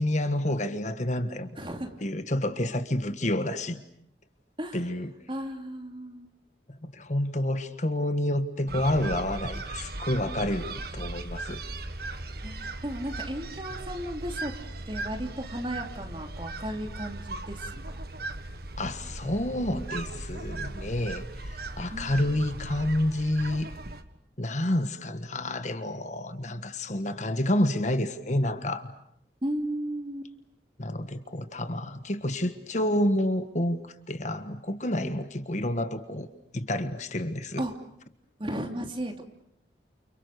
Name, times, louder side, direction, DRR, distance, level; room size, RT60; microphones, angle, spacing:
voice 1, 0.0-1.6 2.0-3.8 4.7-5.1 6.8-11.6 18.8-23.7 24.4-28.9 30.8-36.3 36.5-37.6, left 1 dB, 40° left, 10 dB, 1.5 m, -29 dB
voice 2, 1.6-2.0 4.6-4.8 5.3-6.3 12.4-14.5 14.9-18.0 21.9-22.4 29.4-30.3 37.6-37.7 38.4-39.3, right 1 dB, 30° right, 4 dB, 3.0 m, -35 dB
sound 1, 8.7-24.0, right 2 dB, 55° right, 1.7 m, -38 dB
30.0 x 29.5 x 6.7 m, 0.73 s
head